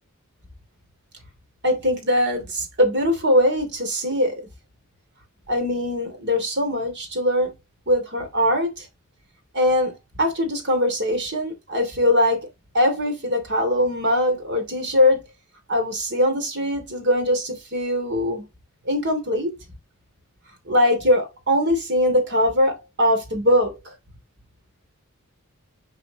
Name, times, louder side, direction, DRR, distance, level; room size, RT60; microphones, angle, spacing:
voice 1, 1.6-4.5 5.5-7.5 7.9-8.9 9.5-12.5 12.7-15.2 15.7-18.4 18.8-19.5 20.7-23.9, left 1 dB, 55° right, 3.0 m, -21 dB
8.0 x 5.1 x 3.1 m
head